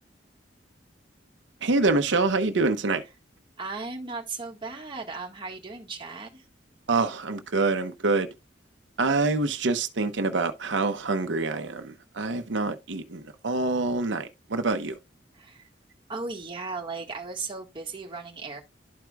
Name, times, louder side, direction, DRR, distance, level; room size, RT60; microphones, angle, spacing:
voice 1, 1.6-3.0 6.9-8.3 9.0-15.0, right 3 dB, 90° right, 0.8 m, -26 dB
voice 2, 3.6-6.4 15.4-15.7 16.1-18.6, right 4 dB, 25° right, 1.5 m, -36 dB
12.0 x 4.6 x 2.3 m
head